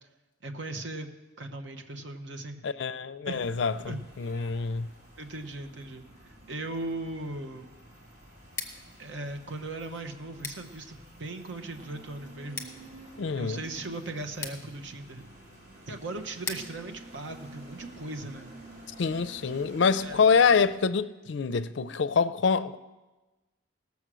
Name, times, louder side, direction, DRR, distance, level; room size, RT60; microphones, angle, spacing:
voice 1, 0.4-1.1 1.4-2.6 3.2-3.4 3.8-4.0 5.2-7.7 9.0-12.7 13.3-15.3 15.9-18.5 20.0-20.2, right 2 dB, 65° right, 0.9 m, -38 dB
voice 2, 2.6-4.9 13.2-13.6 19.0-22.8, left 5 dB, 60° left, 0.4 m, -26 dB
sound 1, 3.3-20.7, right 2 dB, 40° right, 2.7 m, -50 dB
Scissors, 8.4-18.2, left 5 dB, 15° left, 1.1 m, -45 dB
18.0 x 7.2 x 6.2 m
head